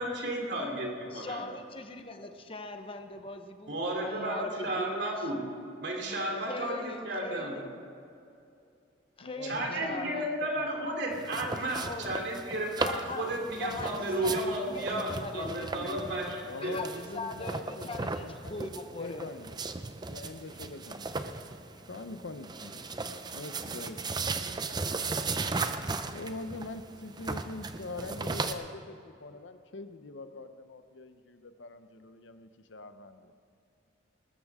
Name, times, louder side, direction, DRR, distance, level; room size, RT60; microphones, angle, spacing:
voice 1, 0.0-1.4 3.7-5.4 5.8-7.6 9.4-16.4 16.6-16.8, right 1 dB, 60° right, 0 dB, 3.1 m, -33 dB
voice 2, 1.1-5.3 6.5-7.6 9.2-10.2 11.4-11.5 11.8-12.1 12.8-13.2 13.6-14.4 14.7-16.0 16.6-16.9 17.1-19.3, left 2 dB, 30° left, 6 dB, 1.0 m, -40 dB
voice 3, 9.2-11.2 16.4-18.7 18.9-19.6 20.1-21.1 21.9-22.9 23.3-24.6 26.1-33.3, left 3 dB, 70° left, 9 dB, 0.8 m, -43 dB
sound 1, 11.1-28.5, right 3 dB, 20° right, 0.6 m, -37 dB
19.5 x 14.0 x 3.7 m, 2.6 s
head